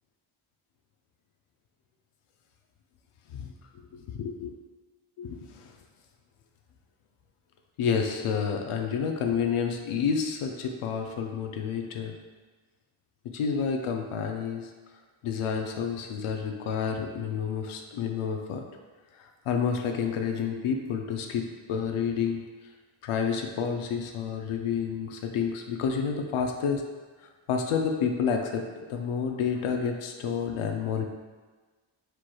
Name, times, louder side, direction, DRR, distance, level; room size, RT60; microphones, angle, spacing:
voice 1, 3.9-4.5 5.2-5.7 7.8-12.1 13.3-14.7 15.2-18.6 19.1-22.4 23.0-26.8 27.2-28.6 28.9-31.0, left 6 dB, 85° left, 3 dB, 0.6 m, -29 dB
4.5 x 4.5 x 2.3 m, 1.4 s
cardioid pair, 70°, 49 cm